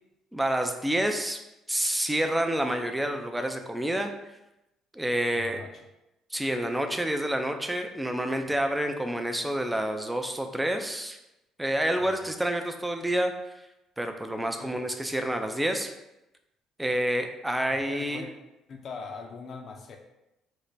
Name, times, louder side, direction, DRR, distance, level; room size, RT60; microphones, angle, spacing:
voice 1, 0.3-1.4 1.7-4.1 4.9-5.6 6.3-11.2 11.6-13.3 14.0-15.9 16.8-18.2, right 1 dB, 10° right, 5 dB, 0.4 m, -28 dB
voice 2, 5.3-5.8 8.5-8.6 14.6-14.9 17.7-18.3 18.7-20.0, left 4 dB, 50° left, 4 dB, 0.6 m, -41 dB
3.2 x 2.1 x 3.9 m, 0.92 s
supercardioid pair, 80°, 0 cm